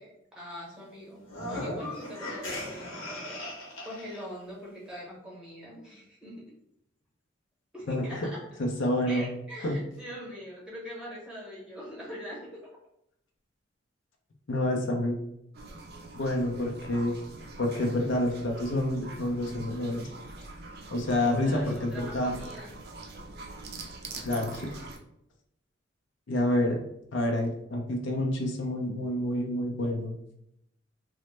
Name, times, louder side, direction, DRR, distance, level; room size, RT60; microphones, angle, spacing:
voice 1, 0.0-3.4 3.8-6.3 7.7-8.4 9.1-12.5 20.8-22.7, equal, 5° right, -5 dB, 0.9 m, -43 dB
sound 1, 1.2-4.2, left 1 dB, 80° left, 0.9 m, -37 dB
voice 2, 7.9-8.3 8.6-9.2 9.6-9.7 14.5-15.2 16.1-17.1 17.6-20.1 20.9-22.3 24.2-24.8 26.3-26.8 27.1-30.1, left 1 dB, 65° left, 1 dB, 0.5 m, -28 dB
sound 2, 15.5-25.0, right 3 dB, 50° right, 0.4 m, -44 dB
3.0 x 2.1 x 3.1 m, 0.78 s
head